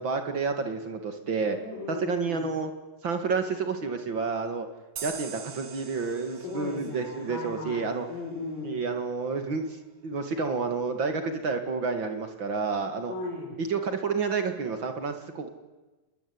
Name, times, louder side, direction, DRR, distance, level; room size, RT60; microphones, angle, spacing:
voice 1, 0.0-1.6 1.9-2.7 3.0-4.7 5.0-8.1 8.6-13.1 13.6-15.5, right 4 dB, 70° right, 7 dB, 1.1 m, -30 dB
voice 2, 1.4-2.5 6.4-8.8 13.1-13.5, left 3 dB, 70° left, -4 dB, 8.1 m, -37 dB
sound 1, 5.0-8.3, right 6 dB, 50° right, 3.6 m, -44 dB
28.0 x 21.0 x 9.6 m, 1.2 s
omnidirectional pair, 5.8 m